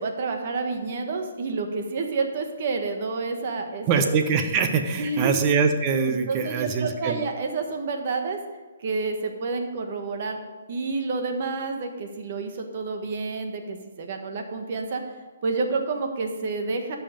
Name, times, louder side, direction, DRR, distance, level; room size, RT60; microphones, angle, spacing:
voice 1, 0.0-4.0 5.0-5.3 6.1-8.4 8.8-10.4 10.7-15.0 15.4-17.0, right 4 dB, 50° right, 4 dB, 1.4 m, -29 dB
voice 2, 3.8-7.2, right 5 dB, 25° right, 6 dB, 1.0 m, -23 dB
13.5 x 5.7 x 5.2 m, 1.4 s
hypercardioid pair, 155°, 0 cm